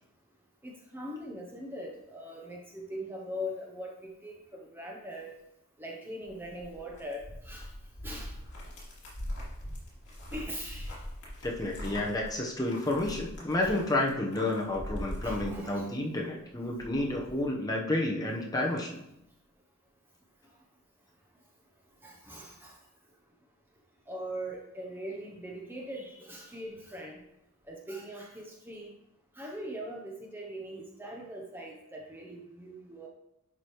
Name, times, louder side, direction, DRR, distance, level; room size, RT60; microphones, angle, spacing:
voice 1, 0.6-5.4 5.8-7.7 8.0-8.3 10.3-11.0 13.6-13.7 15.2-15.9 22.0-22.8 24.1-27.2 27.7-28.9 29.4-33.1, equal, 10° right, -1 dB, 0.7 m, -41 dB
sound 1, 6.3-16.2 16.5-17.4, equal, 50° left, 2.7 m, -42 dB
voice 2, 11.4-19.0, left 1 dB, 15° left, -1 dB, 0.9 m, -30 dB
10.5 x 4.9 x 3.0 m, 0.83 s
head